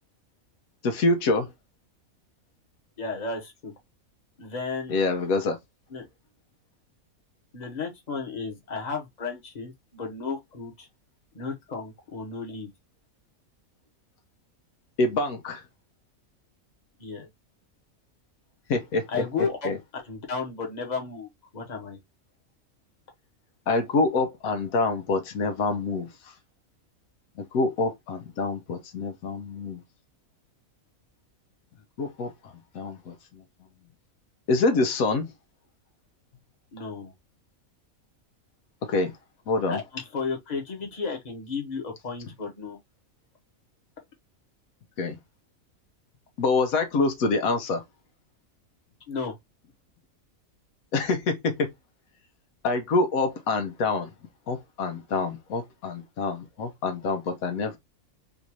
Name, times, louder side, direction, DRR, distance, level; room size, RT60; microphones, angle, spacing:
voice 1, 0.8-1.5 4.9-5.6 15.0-15.6 18.7-19.1 19.6-19.8 23.7-26.1 27.4-29.8 32.0-32.3 32.7-33.4 34.5-35.3 38.9-39.1 39.5-39.8 45.0-45.2 46.4-47.8 50.9-51.7 52.6-54.1 54.5-57.8, left 3 dB, 85° left, 1.3 m, -26 dB
voice 2, 3.0-3.7 4.4-4.9 5.9-6.0 7.5-10.9 11.3-12.7 17.0-17.3 19.1-22.0 36.7-37.1 39.7-42.8 49.1-49.3, left 4 dB, 30° left, 1.2 m, -33 dB
3.7 x 2.6 x 2.9 m
omnidirectional pair, 1.4 m